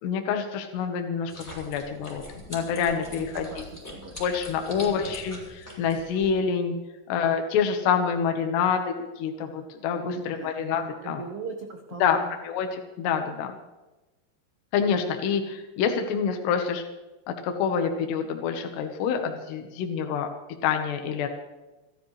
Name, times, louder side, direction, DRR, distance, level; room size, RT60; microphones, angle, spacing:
voice 1, 0.0-2.2 2.5-3.5 4.2-6.8 7.1-11.2 12.0-12.2 12.4-13.5 14.7-16.8 17.3-20.3 20.6-21.3, left 7 dB, 75° left, 4 dB, 3.3 m, -27 dB
sound 1, 1.3-6.4, left 1 dB, 5° left, 5.5 m, -42 dB
voice 2, 3.1-3.6 3.9-4.2 4.8-5.1 7.2-7.3 10.1-12.3, right 5 dB, 85° right, 2 dB, 1.3 m, -40 dB
28.5 x 12.5 x 3.3 m, 1.1 s
omnidirectional pair, 5.1 m